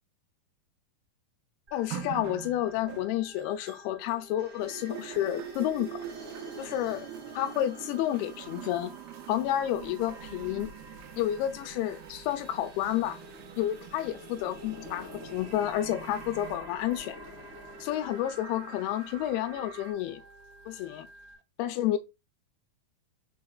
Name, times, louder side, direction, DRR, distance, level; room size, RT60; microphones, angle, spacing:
voice 1, 1.7-6.0 6.6-7.1 7.4-8.9 9.3-10.7 11.2-13.2 13.6-17.2 17.8-20.2 20.7-21.1 21.6-22.0, left 12 dB, 90° left, 2.5 m, -30 dB
Organ, 1.7-21.4, right 2 dB, 15° right, 2.2 m, -54 dB
sound 1, 1.9-4.3 4.6-19.3 20.2-20.3, right 13 dB, 85° right, 2.5 m, -45 dB
sound 2, 4.4-19.9, equal, 40° right, 1.9 m, -48 dB
5.6 x 4.2 x 2.3 m
omnidirectional pair, 4.4 m